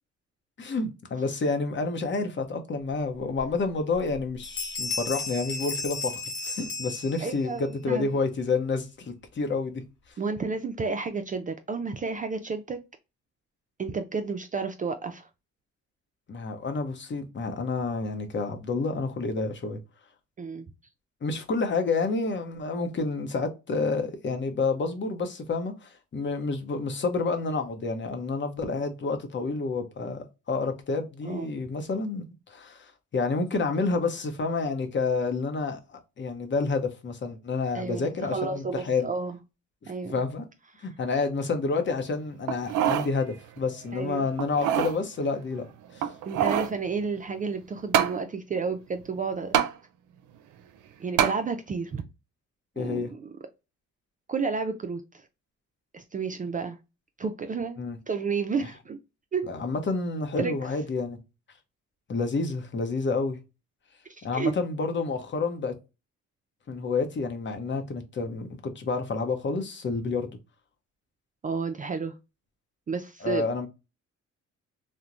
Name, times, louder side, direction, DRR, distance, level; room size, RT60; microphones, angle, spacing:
voice 1, 0.6-6.1 6.4-9.8 16.3-19.8 21.2-39.1 39.8-40.5 40.8-45.6 45.9-46.1 52.8-53.1 57.8-58.0 58.6-58.7 59.5-61.2 62.1-63.4 64.2-65.7 66.7-70.3 73.2-73.7, left 4 dB, 40° left, 0.7 m, -29 dB
Bell, 4.0-4.2 4.4-7.6, left 3 dB, 80° left, 0.9 m, -34 dB
voice 2, 7.2-8.2 10.2-12.8 13.8-15.3 20.4-20.7 31.2-31.6 37.7-39.4 39.9-40.2 40.8-40.9 43.9-44.2 46.3-49.6 51.0-52.0 52.8-53.3 54.3-55.3 55.9-56.8 57.2-57.8 58.1-59.0 59.3-59.5 60.4-60.5 64.1-64.5 71.4-72.1 72.9-73.5, right 4 dB, 25° right, 0.3 m, -31 dB
sound 1, 42.5-43.1 43.6-43.7 44.4-45.0 46.0-46.8 47.9-48.2 49.5-49.7 51.2-51.4 52.0-52.1, right 10 dB, 85° right, 0.5 m, -24 dB
2.9 x 2.1 x 2.4 m
cardioid pair, 90°, 30 cm